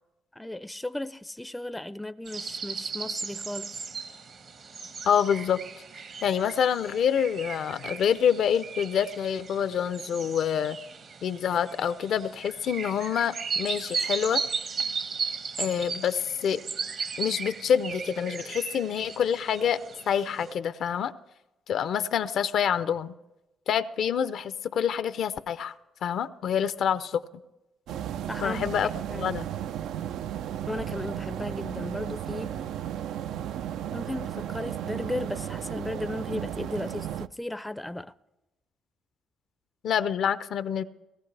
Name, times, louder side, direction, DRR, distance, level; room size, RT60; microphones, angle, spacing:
voice 1, 0.3-3.9 28.3-28.7 29.1-29.2 30.7-32.5 33.9-38.1, left 1 dB, 10° left, 0.4 m, -35 dB
sound 1, 2.3-20.5, right 5 dB, 60° right, 1.1 m, -36 dB
voice 2, 5.0-5.6 6.2-10.8 11.2-14.4 15.6-16.6 17.2-19.8 20.1-21.1 21.7-23.1 23.7-25.7 26.0-27.2 28.4-28.9 29.2-29.4 39.8-40.8, left 8 dB, 70° left, 0.5 m, -26 dB
sound 2, 27.9-37.3, right 10 dB, 85° right, 0.4 m, -34 dB
18.0 x 14.5 x 3.3 m
cardioid pair, 90°, 0 cm